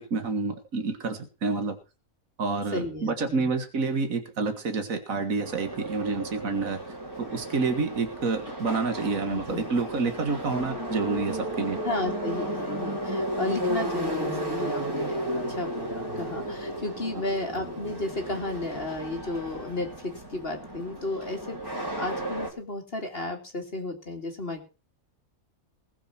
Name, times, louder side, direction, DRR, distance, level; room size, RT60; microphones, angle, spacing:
voice 1, 0.0-1.8 2.4-11.8, right 4 dB, 80° right, 7 dB, 2.1 m, -28 dB
voice 2, 2.7-3.5 9.3-9.6 11.8-24.7, left 2 dB, 45° left, 4 dB, 2.9 m, -33 dB
Subway metro underground, 5.4-22.5, right 1 dB, 15° right, 3.7 m, -33 dB
20.0 x 7.2 x 6.0 m, 0.33 s
omnidirectional pair, 1.4 m